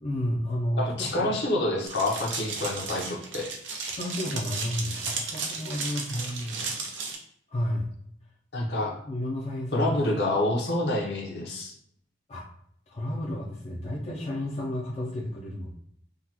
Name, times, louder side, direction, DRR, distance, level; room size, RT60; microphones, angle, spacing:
voice 1, 0.0-1.3 3.8-6.3 7.5-7.9 9.0-9.9 12.3-12.5 12.9-15.7, left 1 dB, 35° left, -4 dB, 0.4 m, -31 dB
voice 2, 0.8-3.5 6.1-6.7 8.5-8.9 9.7-11.7, left 1 dB, 65° left, -1 dB, 0.8 m, -28 dB
sound 1, 1.9-7.2, right 4 dB, 85° right, 0.6 m, -34 dB
3.7 x 2.3 x 2.8 m, 0.70 s
head